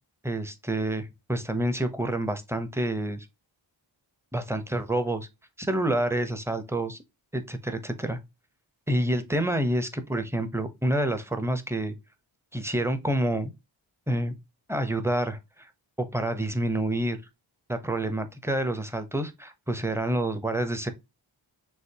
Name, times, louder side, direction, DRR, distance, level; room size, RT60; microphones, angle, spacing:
voice 1, 0.2-3.3 4.3-5.3 5.6-7.0 7.3-8.2 8.9-11.9 12.5-13.5 14.1-14.3 14.7-15.7 16.0-17.2 17.7-20.9, right 1 dB, 5° right, 0.8 m, -28 dB
6.4 x 2.5 x 2.8 m
wide cardioid pair, 70°, 47 cm